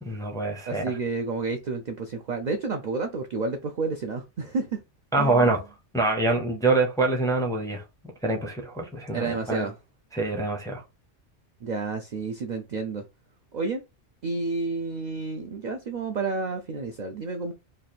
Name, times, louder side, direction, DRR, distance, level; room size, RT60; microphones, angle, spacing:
voice 1, 0.0-0.8 5.1-5.6 5.9-7.8 8.2-9.7 10.1-10.8, right 2 dB, 5° left, 0.5 m, -25 dB
voice 2, 0.7-4.8 5.2-5.5 9.1-9.8 11.6-13.0 13.5-13.8 14.2-17.5, right 4 dB, 60° right, 0.4 m, -30 dB
3.2 x 2.4 x 4.1 m
omnidirectional pair, 1.2 m